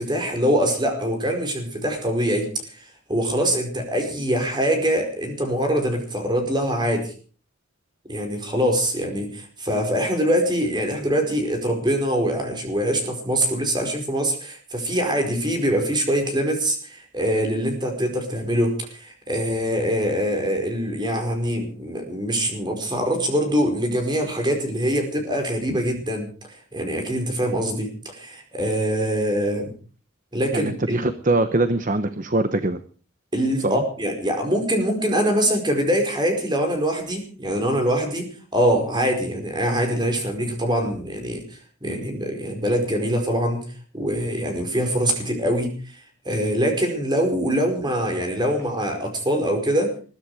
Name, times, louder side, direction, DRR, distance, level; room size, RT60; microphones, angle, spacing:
voice 1, 0.0-2.8 3.1-7.1 8.1-29.7 30.3-31.0 33.3-38.3 38.5-43.6 43.9-49.9, equal, 20° right, 4 dB, 4.9 m, -24 dB
voice 2, 30.5-32.8 33.6-33.8, right 2 dB, 40° right, 10 dB, 1.0 m, -22 dB
21.5 x 13.5 x 5.0 m, 0.40 s
head